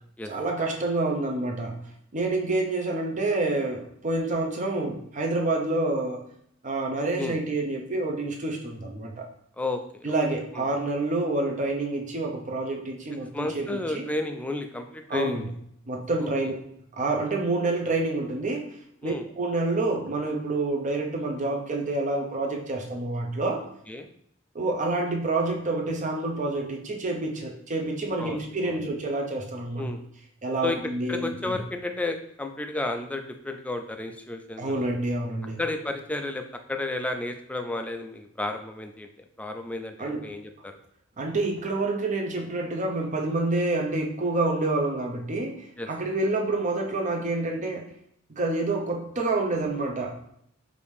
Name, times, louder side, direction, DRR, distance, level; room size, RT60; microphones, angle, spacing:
voice 1, 0.2-1.8 2.1-6.2 6.6-9.3 10.0-14.1 15.1-15.5 15.9-16.5 16.9-18.7 19.0-23.6 24.5-29.9 30.4-31.6 34.6-35.6 40.0-40.3 41.2-47.8 48.3-50.1, right 2 dB, 35° right, 1 dB, 0.7 m, -28 dB
voice 2, 9.6-10.1 10.6-10.7 13.3-15.4 19.0-19.2 23.9-24.1 28.2-28.7 29.8-30.0 30.6-30.8 31.1-34.9 35.6-39.1 39.4-40.7 45.8-45.9, left 2 dB, 5° left, 5 dB, 0.3 m, -32 dB
4.9 x 2.7 x 3.3 m, 0.71 s
head